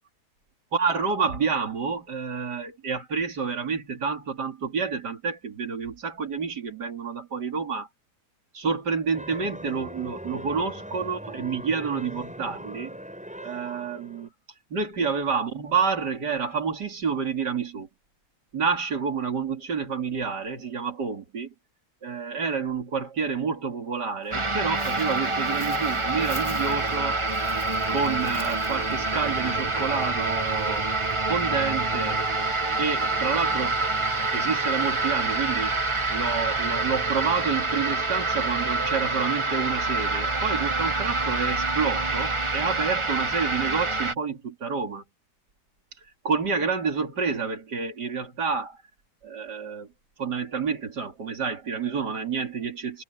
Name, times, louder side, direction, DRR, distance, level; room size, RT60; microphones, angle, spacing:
voice 1, 0.7-7.9 8.5-13.0 13.4-14.3 14.7-17.9 18.5-21.5 22.0-27.2 27.9-30.9 31.3-32.2 32.8-35.8 36.1-45.0 46.2-48.8 49.2-49.9 50.2-53.0, right 5 dB, 75° right, 3.5 m, -29 dB
sound 1, 9.1-14.3, equal, 5° right, 7.8 m, -40 dB
Dog, 24.2-35.0, left 2 dB, 40° left, 6.3 m, -45 dB
sound 2, 24.3-44.1, right 3 dB, 20° right, 1.2 m, -26 dB
omnidirectional pair, 1.8 m